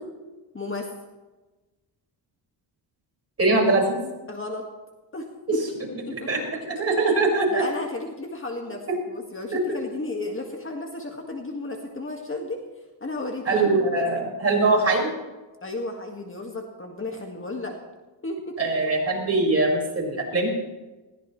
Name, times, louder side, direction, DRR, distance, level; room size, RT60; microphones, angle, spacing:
voice 1, 0.5-0.9 4.3-4.7 5.1-6.6 7.5-12.6 13.0-13.7 15.6-17.8 18.2-18.6, left 2 dB, 25° left, 2 dB, 1.9 m, -33 dB
voice 2, 3.4-4.0 6.1-7.6 9.5-9.6 13.5-15.1 18.6-20.5, right 2 dB, 30° right, -2 dB, 5.4 m, -22 dB
20.5 x 16.0 x 3.2 m, 1.2 s
cardioid pair, 100°, 45 cm